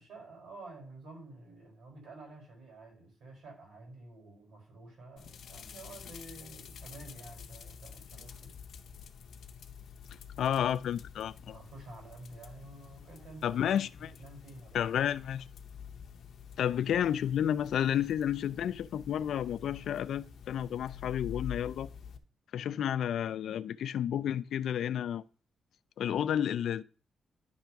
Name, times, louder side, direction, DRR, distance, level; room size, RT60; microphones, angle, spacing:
voice 1, 0.0-8.5 11.5-15.2, right 2 dB, 85° right, 5.0 m, -50 dB
sound 1, 5.2-22.2, left 8 dB, 65° left, 0.7 m, -48 dB
voice 2, 10.4-11.6 13.4-14.1 14.7-15.4 16.6-21.9 22.5-25.2 26.0-26.8, left 9 dB, 80° left, 0.3 m, -31 dB
10.5 x 3.5 x 5.7 m
wide cardioid pair, 180°, 0 cm